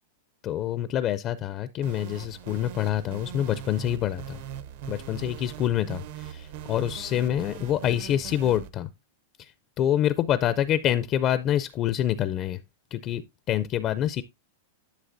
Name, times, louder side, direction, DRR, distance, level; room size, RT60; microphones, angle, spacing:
voice 1, 0.4-4.4 4.9-6.0 6.3-8.9 9.4-9.5 9.8-12.6 12.9-13.2 13.5-14.2, left 11 dB, 30° left, 0.4 m, -26 dB
sound 1, 1.8-8.7, right 10 dB, 55° right, 0.7 m, -41 dB
11.5 x 6.4 x 2.6 m
supercardioid pair, 160°, 0 cm